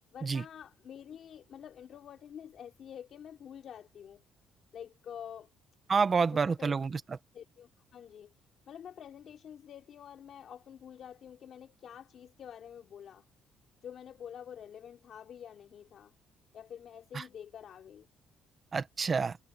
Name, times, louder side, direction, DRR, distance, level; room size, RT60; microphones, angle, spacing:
voice 1, 0.1-4.2 4.7-5.5 6.0-6.1 6.3-6.7 7.3-8.3 8.7-13.2 13.8-16.1 16.5-18.1, left 9 dB, 50° left, 3.9 m, -48 dB
voice 2, 5.9-7.2 17.1-17.2 18.7-19.4, right 5 dB, 30° right, 1.4 m, -28 dB
cardioid pair, 135°, 0 cm